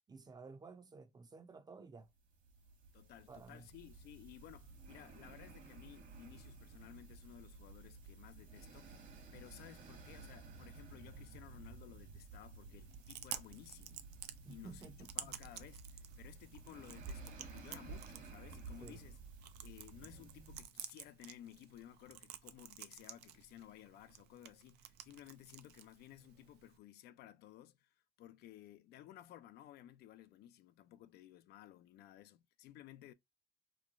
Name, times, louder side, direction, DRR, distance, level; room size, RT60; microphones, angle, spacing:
voice 1, 0.1-2.1 3.3-3.7 14.4-15.4 18.8-19.0, right 4 dB, 25° right, 0.5 m, -54 dB
sound 1, 2.2-20.7, right 4 dB, 50° right, 1.3 m, -54 dB
voice 2, 2.9-9.0 9.3-14.0 14.5-19.2 19.6-33.1, left 12 dB, 70° left, 0.4 m, -57 dB
Chewing mastication, 12.8-26.8, right 11 dB, 75° right, 0.5 m, -52 dB
3.1 x 2.2 x 3.6 m
cardioid pair, 110°, 17 cm